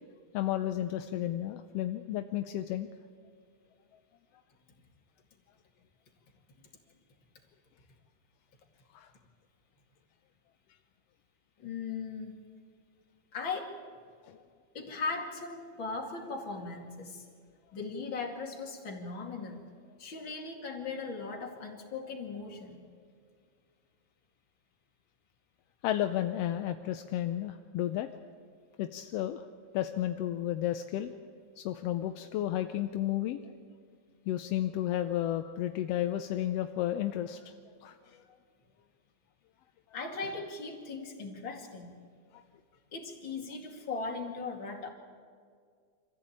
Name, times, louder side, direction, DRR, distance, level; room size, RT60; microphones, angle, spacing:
voice 1, 0.3-2.9 8.9-9.1 14.2-14.4 25.8-28.1 28.8-29.4 29.7-31.1 31.6-33.6 34.3-37.5 37.8-38.2 42.3-42.4, left 12 dB, 75° left, 8 dB, 1.5 m, -32 dB
voice 2, 11.6-12.3 13.3-13.8 14.7-17.3 17.7-19.6 20.0-22.8 39.9-41.9 42.9-44.9, left 4 dB, 45° left, 1 dB, 3.0 m, -38 dB
25.0 x 15.0 x 8.8 m, 2.1 s
omnidirectional pair, 3.3 m